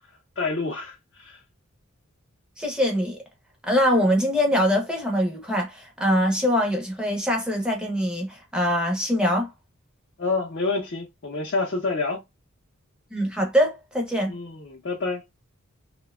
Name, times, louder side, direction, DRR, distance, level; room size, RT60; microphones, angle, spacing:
voice 1, 0.4-1.4 10.2-12.2 14.3-15.2, left 3 dB, 50° left, 0.5 m, -28 dB
voice 2, 2.6-3.2 3.6-9.5 13.1-14.4, equal, 5° right, 0.6 m, -23 dB
2.7 x 2.1 x 2.3 m
head